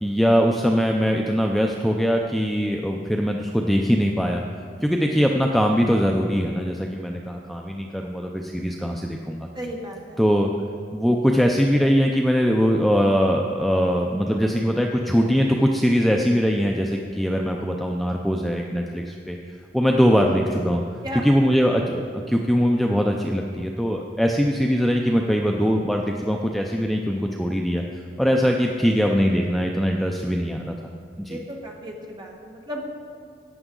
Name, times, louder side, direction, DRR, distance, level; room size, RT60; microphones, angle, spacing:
voice 1, 0.0-4.4 4.8-9.5 10.2-10.5 10.9-19.4 19.7-20.8 21.1-27.8 28.2-30.8 31.2-31.4, equal, ahead, 1 dB, 0.4 m, -21 dB
voice 2, 9.6-10.2 21.0-21.2 31.3-32.9, equal, 25° right, 0 dB, 1.4 m, -34 dB
14.0 x 9.0 x 3.8 m, 2.3 s
head